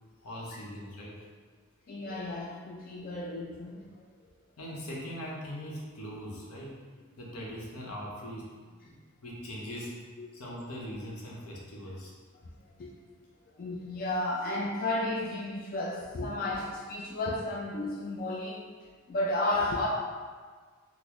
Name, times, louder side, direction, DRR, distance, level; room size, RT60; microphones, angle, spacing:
voice 1, 0.2-1.2 4.6-6.8 7.2-9.0 9.2-10.0 10.3-12.1, equal, 90° left, -4 dB, 0.8 m, -41 dB
voice 2, 1.9-3.8 10.2-10.3 12.8-12.9 13.6-18.6 19.1-19.9, left 2 dB, 40° left, -3 dB, 0.3 m, -32 dB
3.9 x 2.0 x 3.0 m, 1.5 s
head